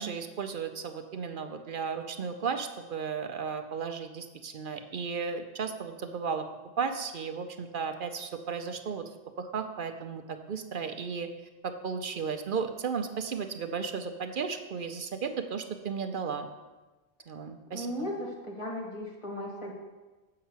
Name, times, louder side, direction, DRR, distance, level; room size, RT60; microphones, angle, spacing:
voice 1, 0.0-6.5 6.8-9.0 9.4-11.3 11.6-16.5 17.3-18.1, right 6 dB, 55° right, 7 dB, 0.7 m, -34 dB
voice 2, 17.7-19.7, equal, 25° left, -2 dB, 1.9 m, -36 dB
7.5 x 5.7 x 7.3 m, 1.2 s
omnidirectional pair, 1.2 m